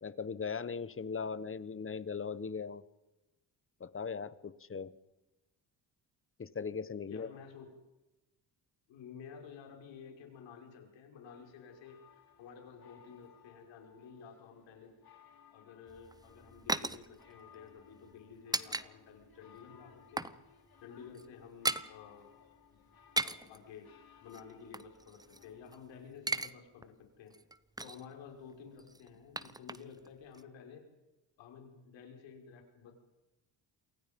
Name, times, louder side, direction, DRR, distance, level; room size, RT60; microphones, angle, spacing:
voice 1, 0.0-2.8 3.8-4.9 6.4-7.3, left 5 dB, 30° left, 16 dB, 1.2 m, -39 dB
voice 2, 7.1-7.7 8.9-14.9 15.5-20.3 20.8-22.3 22.7-22.8 23.2-27.3 27.8-30.9 31.4-32.9, left 6 dB, 85° left, 2 dB, 5.8 m, -52 dB
sound 1, 11.2-25.8, left 9 dB, 55° left, 3.6 m, -62 dB
sound 2, 15.9-18.9 19.2-19.3 19.7-20.4 20.6-20.8 21.1-21.9 22.9-23.6 24.3-25.8 26.0-26.5 26.8-26.9 27.3-28.1 28.8-30.1 30.3-30.4, right 2 dB, 10° right, 0.9 m, -37 dB
28.0 x 23.5 x 5.4 m, 1.0 s
cardioid pair, 80°, 43 cm